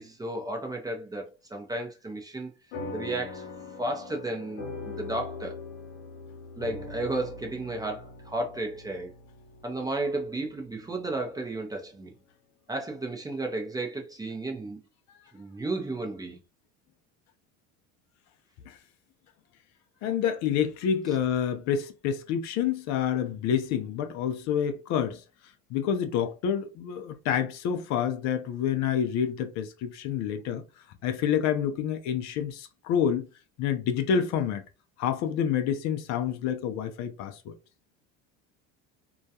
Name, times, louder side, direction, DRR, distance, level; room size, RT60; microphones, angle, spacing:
voice 1, 0.0-2.5 2.9-3.5 3.8-5.6 6.6-9.1 9.6-12.1 12.7-14.8 15.3-16.4, right 2 dB, 10° right, 0.5 m, -33 dB
sound 1, 2.7-11.5, left 3 dB, 90° left, 0.8 m, -42 dB
voice 2, 20.0-25.2 25.7-30.6 31.0-33.3 33.6-34.6 35.0-37.5, left 8 dB, 55° left, 0.5 m, -28 dB
2.3 x 2.2 x 2.7 m
supercardioid pair, 100°, 33 cm